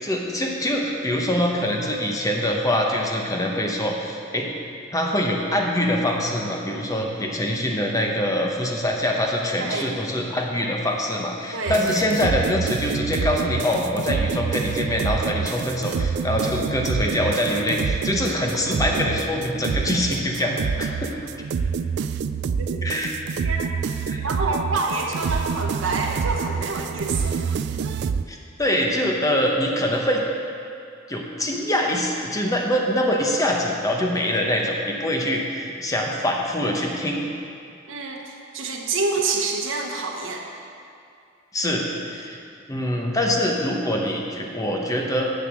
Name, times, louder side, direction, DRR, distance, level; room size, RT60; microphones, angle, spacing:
voice 1, 0.0-4.5 4.9-21.1 22.8-23.1 24.1-24.2 28.3-30.2 31.1-37.3 41.5-42.4 42.7-45.3, left 1 dB, 15° left, 0 dB, 1.0 m, -24 dB
voice 2, 11.5-12.1 22.6-22.8 23.4-23.7 24.2-27.4 37.9-40.4, right 3 dB, 75° right, 1 dB, 1.2 m, -27 dB
sound 1, 11.7-28.2, right 6 dB, 60° right, 0.3 m, -27 dB
7.8 x 6.7 x 7.5 m, 2.4 s
head